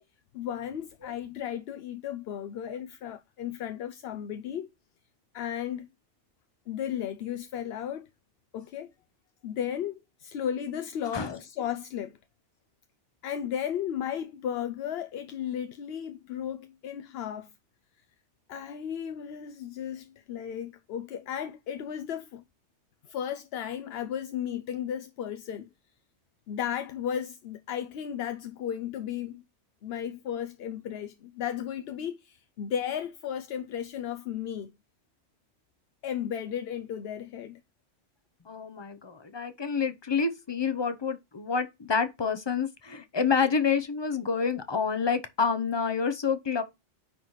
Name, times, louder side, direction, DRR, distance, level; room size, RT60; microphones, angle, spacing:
voice 1, 0.3-4.7 5.3-5.9 6.7-8.1 8.5-8.9 9.4-12.2 13.2-17.5 18.5-22.4 23.0-25.7 26.5-29.4 29.8-34.7 36.0-37.6, left 9 dB, 65° left, 0.8 m, -34 dB
voice 2, 38.5-46.6, left 5 dB, 25° left, 0.6 m, -28 dB
9.8 x 4.0 x 3.1 m
omnidirectional pair, 1.2 m